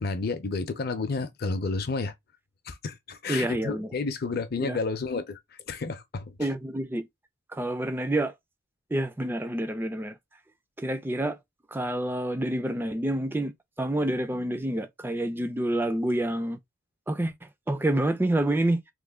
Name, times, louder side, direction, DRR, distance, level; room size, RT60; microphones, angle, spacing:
voice 1, 0.0-2.1 2.7-5.4 5.7-6.5, left 3 dB, 45° left, 0.5 m, -31 dB
voice 2, 3.3-3.9 4.6-4.8 6.4-7.1 7.5-8.3 8.9-10.1 10.8-11.4 11.7-13.5 13.8-16.6 17.1-17.3 17.7-18.8, right 1 dB, 10° right, 0.3 m, -28 dB
3.1 x 2.2 x 3.5 m
head